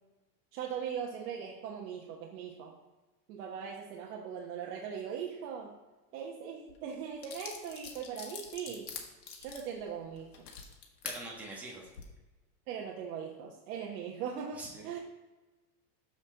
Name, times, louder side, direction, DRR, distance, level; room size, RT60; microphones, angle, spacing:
voice 1, 0.5-2.7 3.3-5.7 6.1-8.9 9.4-10.5 12.7-15.0, right 7 dB, 60° right, -1 dB, 1.2 m, -40 dB
sound 1, 6.7-6.8 7.2-11.2 11.8-12.0, left 6 dB, 90° left, 1.7 m, -44 dB
voice 2, 11.0-11.9 14.5-15.0, right 2 dB, 5° right, -4 dB, 1.1 m, -44 dB
7.1 x 6.2 x 3.9 m, 1.2 s
supercardioid pair, 160°, 49 cm